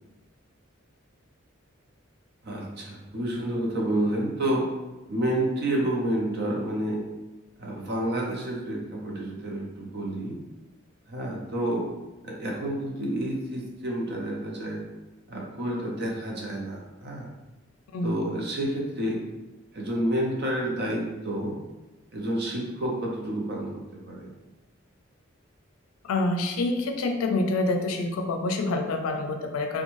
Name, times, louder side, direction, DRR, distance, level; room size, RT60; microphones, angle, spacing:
voice 1, 2.4-4.7 5.1-7.0 7.6-10.4 11.1-11.9 12.2-14.8 15.3-17.3 18.0-19.2 19.7-21.6 22.1-24.3, right 1 dB, 50° right, -2 dB, 0.6 m, -29 dB
voice 2, 26.0-29.8, left 2 dB, 90° left, 4 dB, 0.4 m, -27 dB
2.5 x 2.1 x 3.0 m, 1.1 s
head